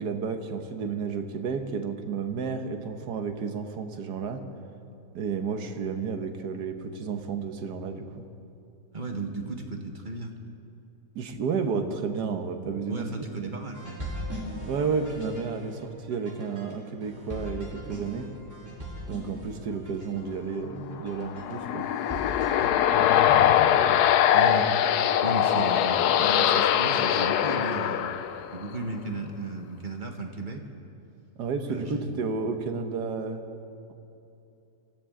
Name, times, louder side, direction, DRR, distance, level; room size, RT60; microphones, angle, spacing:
voice 1, 0.0-4.4 5.1-8.3 11.1-13.1 13.4-13.7 14.7-18.3 19.1-21.8 31.4-33.4, right 5 dB, 75° right, 6 dB, 1.6 m, -31 dB
voice 2, 8.9-10.3 12.9-14.5 22.6-23.1 24.3-24.7 25.2-28.1 28.5-30.6 31.7-32.0, right 2 dB, 30° right, 3 dB, 1.2 m, -35 dB
sound 1, 13.7-22.6, equal, 10° right, 3.5 m, -40 dB
sound 2, 21.2-28.8, left 10 dB, 75° left, 1.1 m, -22 dB
24.5 x 14.5 x 3.8 m, 2.8 s
omnidirectional pair, 1.8 m